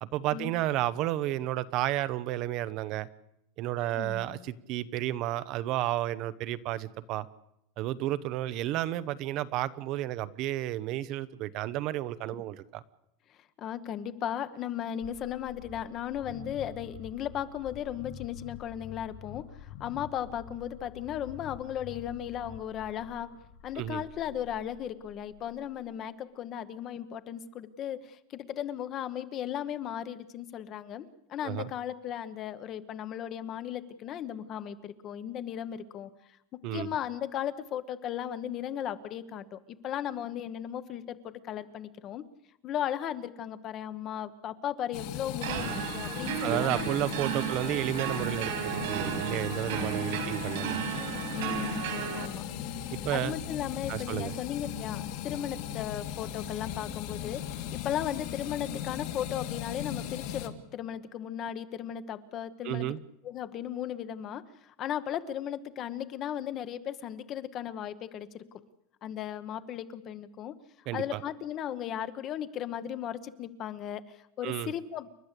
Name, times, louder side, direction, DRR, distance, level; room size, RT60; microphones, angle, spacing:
voice 1, 0.0-3.1 3.6-7.3 7.8-12.8 23.8-24.0 31.4-31.7 36.6-36.9 46.4-50.8 52.9-53.4 53.9-54.3 62.6-63.0 70.9-71.2 74.4-74.7, right 14 dB, 40° right, 14 dB, 0.8 m, -32 dB
voice 2, 4.0-4.4 13.3-23.3 23.6-36.1 36.7-42.2 42.6-47.0 47.4-47.7 49.7-50.4 51.3-51.8 52.1-52.4 53.1-62.8 63.2-68.4 69.0-75.1, left 10 dB, 30° left, 13 dB, 1.0 m, -36 dB
sound 1, 15.0-25.9, left 9 dB, 85° left, 4.4 m, -48 dB
sound 2, 44.9-60.5, left 10 dB, 55° left, 2.0 m, -38 dB
sound 3, 45.4-52.3, right 9 dB, 65° right, 3.1 m, -34 dB
29.5 x 12.0 x 8.2 m, 0.79 s
supercardioid pair, 165°, 0 cm